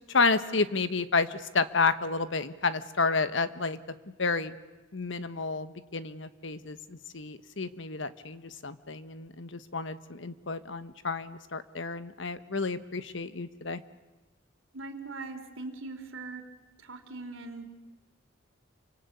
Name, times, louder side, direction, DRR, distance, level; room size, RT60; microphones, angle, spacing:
voice 1, 0.1-3.8 4.2-4.6 4.9-13.8, left 4 dB, 65° left, 12 dB, 1.2 m, -30 dB
voice 2, 14.7-16.4 16.8-17.6, right 3 dB, 75° right, 6 dB, 3.3 m, -40 dB
28.0 x 25.0 x 8.4 m, 1.1 s
head